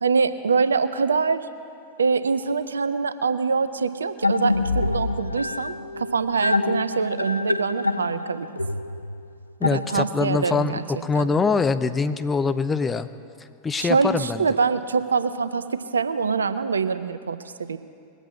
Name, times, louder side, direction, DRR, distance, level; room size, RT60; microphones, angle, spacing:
voice 1, 0.0-1.5 2.0-8.6 9.7-10.8 11.1-11.3 13.8-17.8, right 5 dB, 75° right, 12 dB, 0.6 m, -24 dB
sound 1, 4.2-10.4, left 3 dB, 85° left, 0.3 m, -26 dB
voice 2, 9.6-13.1 13.6-14.5, left 4 dB, 15° left, 11 dB, 0.5 m, -23 dB
20.5 x 8.2 x 8.0 m, 2.4 s
figure-of-eight pair, 90°, 0 cm